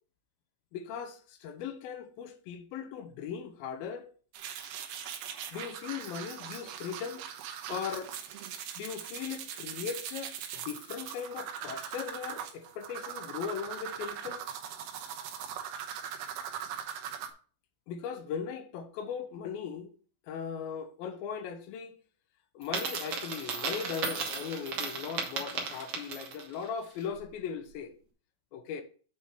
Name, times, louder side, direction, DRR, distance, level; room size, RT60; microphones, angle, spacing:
voice 1, 0.7-4.1 5.5-7.2 7.7-8.1 8.8-14.4 17.9-19.9 20.3-22.0 22.5-27.9 28.5-28.8, left 7 dB, 80° left, 2.5 m, -38 dB
sound 1, 4.3-17.3, right 9 dB, 85° right, 2.8 m, -40 dB
Coin (dropping), 22.6-26.5, right 5 dB, 60° right, 1.6 m, -35 dB
7.5 x 4.9 x 4.6 m
omnidirectional pair, 4.3 m